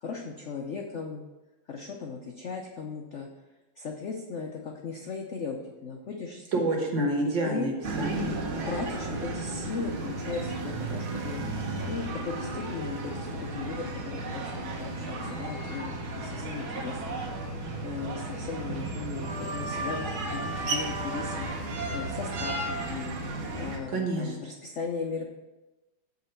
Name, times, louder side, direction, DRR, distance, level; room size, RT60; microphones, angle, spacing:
voice 1, 0.0-1.3 1.7-3.3 3.8-6.6 7.2-7.7 8.6-11.4 11.9-17.2 17.8-21.5 21.9-23.1 23.6-25.3, left 5 dB, 75° left, 1 dB, 0.6 m, -37 dB
voice 2, 6.5-7.7 8.0-8.4 23.9-24.4, right 1 dB, 70° right, 0 dB, 2.1 m, -28 dB
sound 1, 7.8-23.8, right 2 dB, 85° right, 1.9 m, -34 dB
8.2 x 4.0 x 6.6 m, 1.1 s
omnidirectional pair, 2.2 m